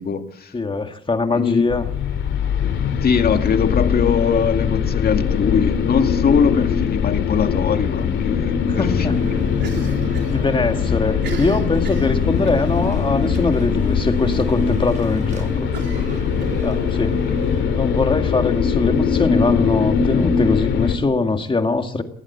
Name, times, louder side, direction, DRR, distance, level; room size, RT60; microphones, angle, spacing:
voice 1, 0.0-0.5 1.3-1.6 3.0-9.3 9.8-10.0 17.3-17.4, left 6 dB, 50° left, 6 dB, 2.2 m, -21 dB
voice 2, 0.5-1.9 8.8-9.2 10.3-15.7 16.6-17.3 17.7-22.0, left 3 dB, 25° left, 6 dB, 2.1 m, -22 dB
sound 1, 1.7-21.0, left 7 dB, 75° left, 2.6 m, -21 dB
sound 2, 8.7-17.6, right 2 dB, 40° right, 6.2 m, -33 dB
Cough, 9.6-10.4 10.6-10.7 11.1-12.7 13.3-13.6 14.0-14.1 14.4-14.5 15.7-17.0, right 6 dB, 60° right, 3.8 m, -35 dB
20.0 x 16.0 x 8.4 m, 0.73 s
cardioid pair, 90°, 20 cm